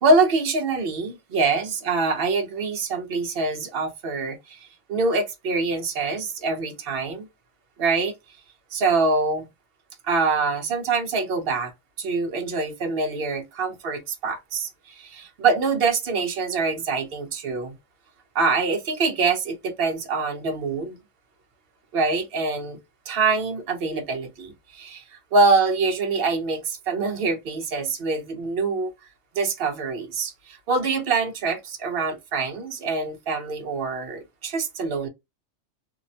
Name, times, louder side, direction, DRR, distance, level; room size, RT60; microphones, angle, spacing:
voice 1, 0.0-7.3 7.8-8.1 8.7-9.5 10.0-11.7 12.0-17.7 18.3-21.0 21.9-22.8 23.1-25.0 25.3-28.9 29.3-35.1, right 3 dB, 55° right, 0.7 m, -24 dB
2.7 x 2.1 x 2.6 m
omnidirectional pair, 1.4 m